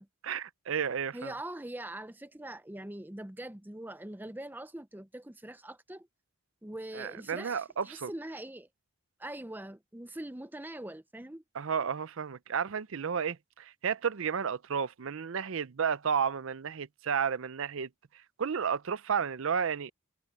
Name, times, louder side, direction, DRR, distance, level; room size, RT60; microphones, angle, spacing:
voice 1, 0.2-1.3 6.9-8.1 11.5-17.9 18.4-19.9, right 7 dB, 60° right, 0.5 m, -32 dB
voice 2, 1.1-6.1 6.6-8.7 9.2-11.4, right 1 dB, 10° right, 0.6 m, -42 dB
head